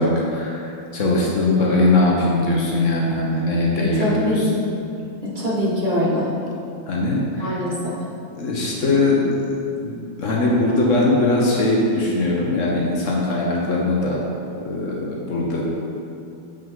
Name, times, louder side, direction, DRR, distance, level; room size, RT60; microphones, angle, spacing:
voice 1, 0.0-4.5 6.9-7.6 8.3-14.2 14.6-15.7, left 2 dB, 65° left, -3 dB, 1.2 m, -21 dB
voice 2, 3.8-4.4 5.2-6.3 7.4-7.9, left 1 dB, 35° right, -7 dB, 1.7 m, -23 dB
7.3 x 5.5 x 3.7 m, 2.6 s
omnidirectional pair, 1.4 m